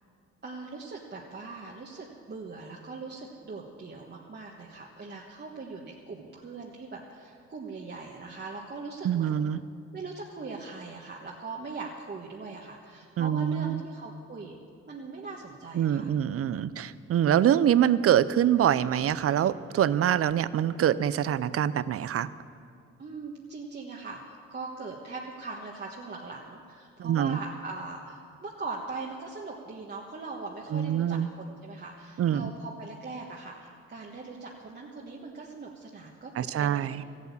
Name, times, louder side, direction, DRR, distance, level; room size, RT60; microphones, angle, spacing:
voice 1, 0.4-9.5 9.9-14.6 14.9-16.1 23.0-37.0, right 3 dB, 35° right, -2 dB, 1.4 m, -41 dB
voice 2, 9.0-9.6 13.2-13.8 15.7-22.3 27.0-27.4 30.7-31.3 32.2-32.5 36.4-37.0, right 10 dB, 50° right, 16 dB, 0.6 m, -25 dB
14.5 x 8.4 x 8.5 m, 2.2 s
cardioid pair, 90°, 30 cm